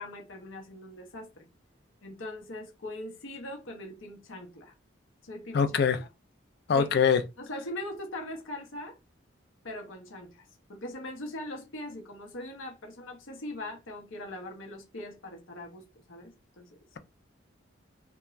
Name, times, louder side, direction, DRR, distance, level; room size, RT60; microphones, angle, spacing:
voice 1, 0.0-1.5 2.0-4.7 5.2-6.1 6.7-7.0 7.4-9.0 9.6-16.8, left 1 dB, 80° left, 0.8 m, -41 dB
voice 2, 5.5-6.0 6.7-7.2, left 6 dB, 55° left, 0.4 m, -23 dB
2.4 x 2.2 x 3.0 m
head